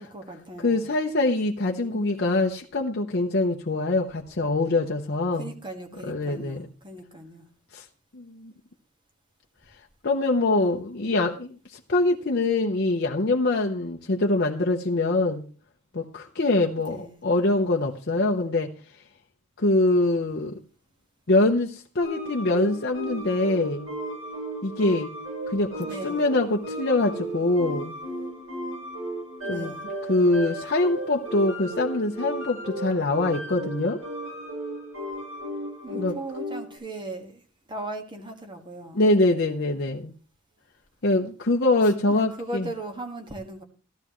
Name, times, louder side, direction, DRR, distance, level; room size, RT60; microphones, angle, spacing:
voice 1, 0.0-0.9 1.6-2.3 5.4-7.4 16.8-17.2 25.8-26.2 29.4-29.9 35.8-37.4 37.7-39.0 42.1-43.6, right 2 dB, 20° right, 1.7 m, -38 dB
voice 2, 0.6-5.5 6.1-6.7 7.7-7.8 8.1-8.5 10.0-15.4 15.9-18.7 19.6-20.6 21.3-23.9 24.6-25.1 25.5-27.9 29.5-29.7 30.1-34.0 35.9-36.2 38.9-40.1 41.0-42.7, left 2 dB, 50° left, 0.8 m, -24 dB
sound 1, 22.0-36.8, right 1 dB, 70° right, 7.9 m, -35 dB
14.0 x 13.0 x 3.1 m
head